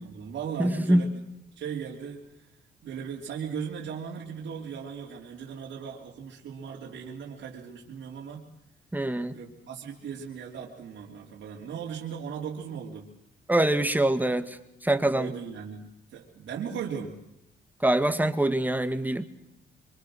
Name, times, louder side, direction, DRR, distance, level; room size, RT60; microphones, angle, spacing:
voice 1, 0.0-1.2 1.6-2.5 2.8-8.4 9.3-13.1 15.1-17.2, right 7 dB, 70° right, -2 dB, 3.3 m, -37 dB
voice 2, 0.6-1.0 8.9-9.3 13.5-14.6 14.8-15.3 17.8-19.2, right 1 dB, 10° right, 9 dB, 1.9 m, -24 dB
25.5 x 24.5 x 6.4 m, 0.85 s
cardioid pair, 90°, 20 cm